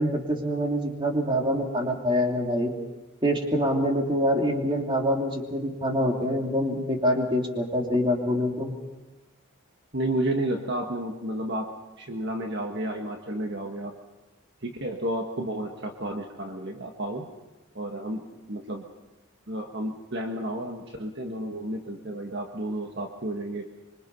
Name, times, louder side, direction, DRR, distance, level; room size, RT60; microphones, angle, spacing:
voice 1, 0.0-2.7 3.2-8.8, equal, 25° right, 1 dB, 3.0 m, -25 dB
voice 2, 9.9-11.7 12.0-13.9 14.6-17.3 17.7-18.2 18.5-18.8 19.5-23.7, right 1 dB, 55° right, 3 dB, 1.5 m, -31 dB
26.0 x 24.0 x 5.5 m, 1.1 s
head